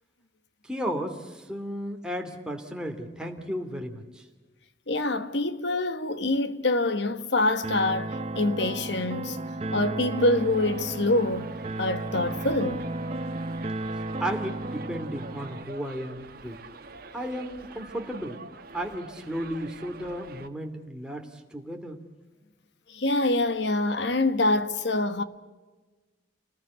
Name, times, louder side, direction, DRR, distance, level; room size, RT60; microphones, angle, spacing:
voice 1, 0.6-4.3 14.2-16.6 17.1-18.4 18.7-22.0, equal, 5° right, 2.5 m, -34 dB
voice 2, 4.9-9.4 9.7-11.5 11.8-12.8 22.9-25.2, left 2 dB, 65° left, 1.5 m, -25 dB
sound 1, 7.6-15.6, right 1 dB, 35° right, 0.9 m, -33 dB
Subway metro underground, 10.2-20.5, right 3 dB, 50° right, 1.6 m, -46 dB
29.0 x 20.0 x 8.4 m
head